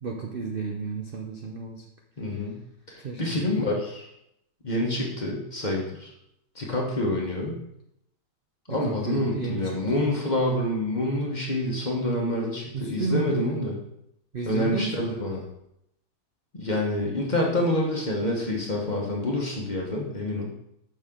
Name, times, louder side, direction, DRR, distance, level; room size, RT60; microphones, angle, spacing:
voice 1, 0.0-1.8 3.0-3.4 8.7-9.6 12.7-13.7 14.3-15.2, right 4 dB, 55° right, 1 dB, 0.6 m, -31 dB
voice 2, 2.2-2.6 2.9-4.0 4.6-6.1 6.5-7.6 8.7-13.8 14.4-15.4 16.5-20.5, left 1 dB, 30° left, -2 dB, 1.1 m, -27 dB
6.4 x 6.3 x 3.7 m, 0.78 s
omnidirectional pair, 1.8 m